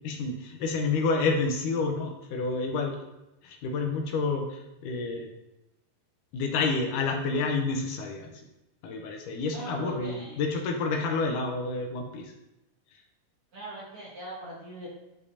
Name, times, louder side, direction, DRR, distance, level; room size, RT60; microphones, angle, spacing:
voice 1, 0.0-3.0 3.4-5.3 6.3-8.3 8.8-12.3, left 3 dB, 75° left, 2 dB, 2.2 m, -29 dB
voice 2, 9.5-10.4 13.5-14.9, right 1 dB, 55° right, -5 dB, 1.8 m, -40 dB
10.5 x 4.9 x 2.8 m, 0.94 s
omnidirectional pair, 3.9 m